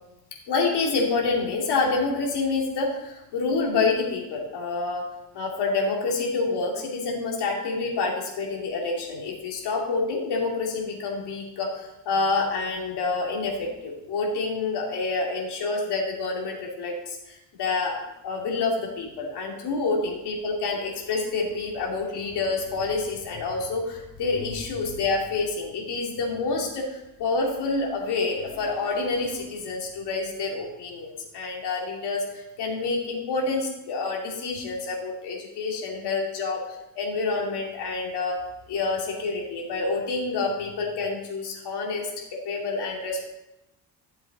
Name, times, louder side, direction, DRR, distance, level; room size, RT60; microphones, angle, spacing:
voice 1, 0.5-5.0 5.3-18.0 18.2-38.4 38.7-43.3, left 3 dB, 70° left, -1 dB, 2.7 m, -28 dB
12.5 x 7.5 x 4.1 m, 0.91 s
cardioid pair, 170°, 42 cm